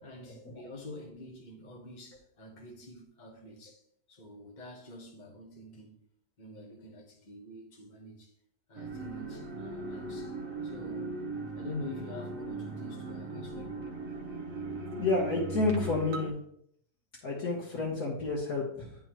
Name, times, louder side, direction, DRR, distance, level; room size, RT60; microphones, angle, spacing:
voice 1, 0.0-3.8 4.1-6.0 6.4-8.3 8.7-10.4 10.6-11.2 11.5-13.9, left 2 dB, 30° left, 1.3 m, -46 dB
sound 1, 8.7-16.3, right 2 dB, 50° right, 0.7 m, -38 dB
voice 2, 15.0-16.3 17.2-19.1, left 3 dB, 70° left, 1.6 m, -30 dB
10.5 x 3.8 x 3.0 m
omnidirectional pair, 1.6 m